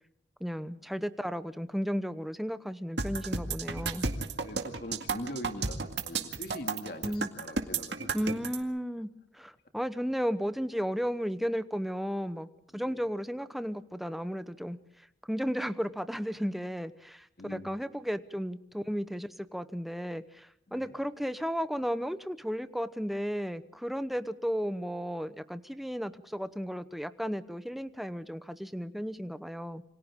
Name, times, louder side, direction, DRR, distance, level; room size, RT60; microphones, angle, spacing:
voice 1, 0.4-4.1 7.0-7.3 8.1-9.1 9.3-14.8 15.2-29.8, equal, ahead, 11 dB, 0.9 m, -34 dB
sound 1, 3.0-8.6, right 4 dB, 65° right, 2.1 m, -32 dB
voice 2, 4.4-8.1 12.7-13.0 17.4-17.7 20.7-20.9, left 1 dB, 50° left, 6 dB, 2.3 m, -42 dB
28.5 x 25.5 x 3.7 m, 0.74 s
head